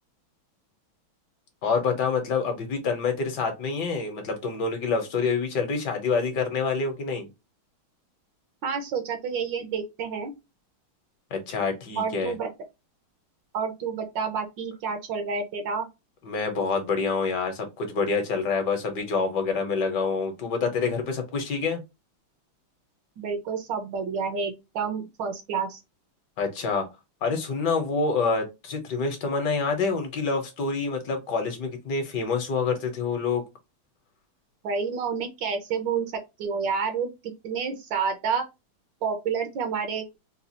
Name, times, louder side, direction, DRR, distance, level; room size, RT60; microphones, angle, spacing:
voice 1, 1.6-7.3 11.3-12.3 16.2-21.8 26.4-26.8 27.2-33.4, left 4 dB, 65° left, 1.3 m, -27 dB
voice 2, 8.6-10.3 12.0-12.5 13.5-15.9 23.2-25.8 34.6-36.1 36.4-38.4 39.0-40.1, right 5 dB, 70° right, 1.4 m, -29 dB
4.0 x 2.4 x 2.7 m
omnidirectional pair, 2.2 m